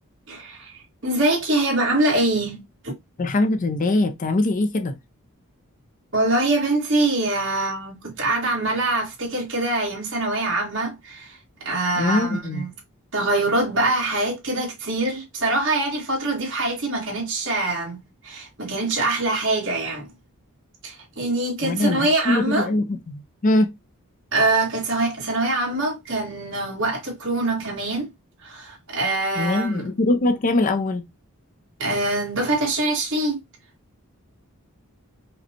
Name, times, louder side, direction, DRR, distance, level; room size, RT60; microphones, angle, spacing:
voice 1, 0.3-2.9 6.1-12.7 13.1-20.1 20.8-22.7 24.3-28.1 28.4-29.9 31.8-33.4, right 2 dB, 55° right, 1.9 m, -24 dB
voice 2, 3.2-5.0 12.0-12.6 21.6-23.7 29.4-31.0, left 2 dB, 35° left, 0.4 m, -22 dB
4.9 x 2.2 x 2.9 m
head